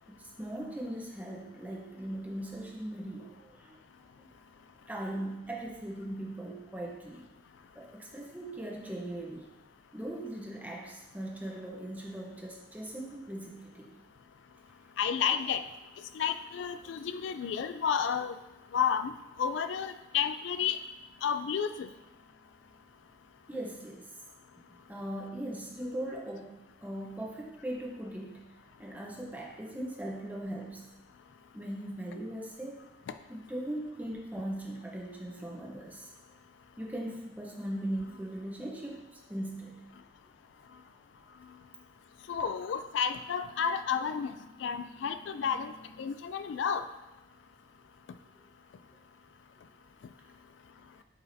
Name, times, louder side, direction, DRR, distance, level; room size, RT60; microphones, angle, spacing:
voice 1, 0.2-3.8 4.2-4.3 4.9-7.2 7.7-9.5 9.9-13.9 23.5-24.1 24.9-28.4 28.8-30.8 31.5-32.8 33.3-36.1 36.8-39.8, right 1 dB, 10° right, -2 dB, 0.9 m, -39 dB
voice 2, 15.0-15.6 16.1-18.4 18.7-19.1 19.4-20.8 21.2-21.9 42.3-44.3 44.6-46.8, left 7 dB, 75° left, 10 dB, 0.3 m, -31 dB
8.3 x 4.8 x 2.7 m, 1.0 s
head